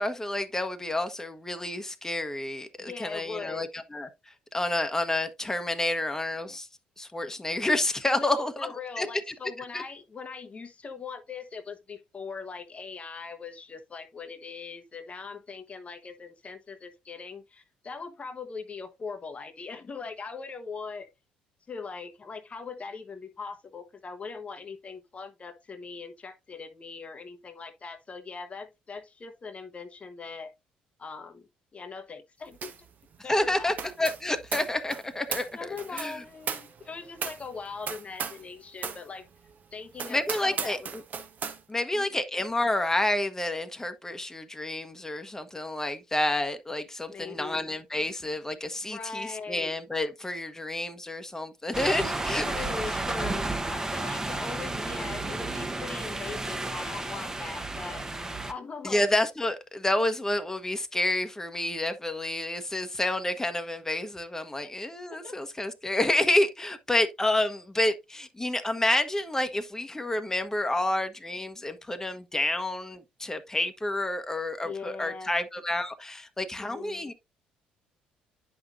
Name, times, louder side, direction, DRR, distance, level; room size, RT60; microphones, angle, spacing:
voice 1, 0.0-6.7 7.0-8.5 9.0-9.1 9.7-9.8 33.3-36.2 40.1-41.0 41.7-52.5 58.8-77.1, left 1 dB, 10° left, 1.2 m, -29 dB
voice 2, 2.8-3.7 8.1-21.1 21.7-30.5 31.0-32.7 33.2-33.7 35.5-39.3 39.7-40.9 41.9-42.2 47.1-47.7 48.8-49.8 52.4-58.1 58.5-59.1 64.6-64.7 65.1-65.4 74.6-75.4 76.6-77.1, left 5 dB, 35° left, 1.0 m, -40 dB
sound 1, 32.6-32.9 33.1-38.5 38.8-39.0 39.5-39.6 39.9-41.6, right 6 dB, 45° right, 1.3 m, -36 dB
sound 2, 51.7-58.5, right 2 dB, 15° right, 1.1 m, -32 dB
9.9 x 5.9 x 2.6 m
figure-of-eight pair, 50°, 4 cm